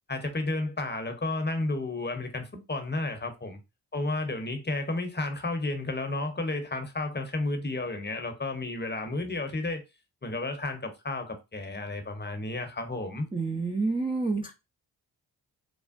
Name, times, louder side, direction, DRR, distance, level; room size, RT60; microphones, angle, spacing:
voice 1, 0.1-3.6 3.9-9.8 10.2-13.3, left 2 dB, 20° left, 0.8 m, -32 dB
voice 2, 13.3-14.5, right 3 dB, 10° right, 0.5 m, -28 dB
3.4 x 2.1 x 2.5 m
supercardioid pair, 45°, 47 cm